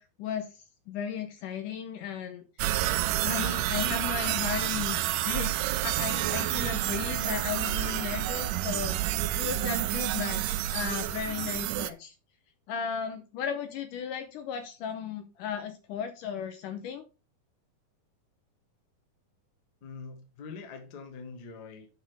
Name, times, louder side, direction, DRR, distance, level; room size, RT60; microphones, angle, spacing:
voice 1, 0.0-2.9 3.2-9.0 9.4-12.2 12.7-17.1, left 8 dB, 75° left, 2.1 m, -35 dB
sound 1, 2.6-11.9, right 15 dB, 85° right, 1.9 m, -29 dB
voice 2, 19.8-21.9, left 4 dB, 50° left, 1.3 m, -44 dB
7.4 x 6.0 x 4.9 m
omnidirectional pair, 4.3 m